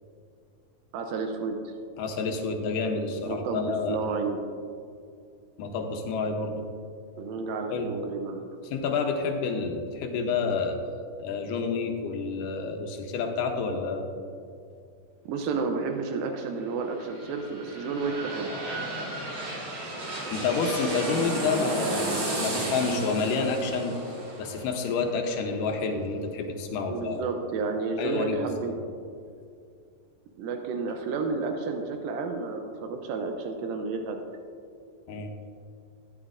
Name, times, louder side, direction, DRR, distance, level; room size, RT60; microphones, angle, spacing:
voice 1, 0.9-1.7 3.2-4.4 7.2-8.5 15.3-18.5 26.9-28.7 30.4-34.2, right 4 dB, 90° right, 4 dB, 2.5 m, -31 dB
voice 2, 2.0-4.1 5.6-6.7 7.7-7.9 8.6-10.8 11.2-14.1 20.3-24.0 24.4-27.2 28.0-28.8 35.1-35.3, left 4 dB, 80° left, 3 dB, 2.3 m, -29 dB
sound 1, 16.8-26.4 26.8-26.9, right 2 dB, 50° right, 2.7 m, -34 dB
13.0 x 9.7 x 2.5 m, 2.4 s
omnidirectional pair, 4.0 m